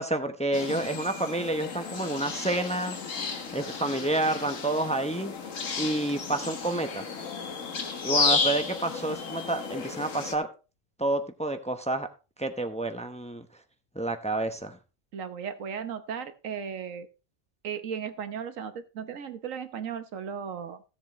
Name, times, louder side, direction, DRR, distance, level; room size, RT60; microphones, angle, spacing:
voice 1, 0.0-3.0 3.5-5.3 5.8-7.1 8.0-10.5 11.0-12.1 12.4-13.5 13.9-14.8, right 2 dB, 5° left, 7 dB, 0.7 m, -29 dB
sound 1, 0.5-10.4, left 5 dB, 65° left, 1.7 m, -32 dB
voice 2, 15.1-17.1 17.6-20.8, right 7 dB, 70° right, 11 dB, 1.4 m, -36 dB
15.5 x 7.6 x 3.1 m, 0.32 s
omnidirectional pair, 1.4 m